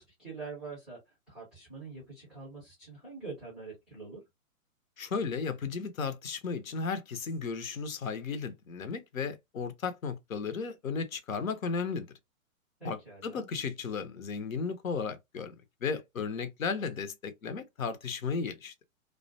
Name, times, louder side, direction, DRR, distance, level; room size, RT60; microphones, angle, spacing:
voice 1, 0.0-4.2 12.8-13.5, right 4 dB, ahead, 0.4 m, -45 dB
voice 2, 5.0-12.1 12.8-15.5 15.8-18.8, left 5 dB, 75° left, 0.7 m, -35 dB
2.4 x 2.1 x 2.5 m
figure-of-eight pair, 120°, 41 cm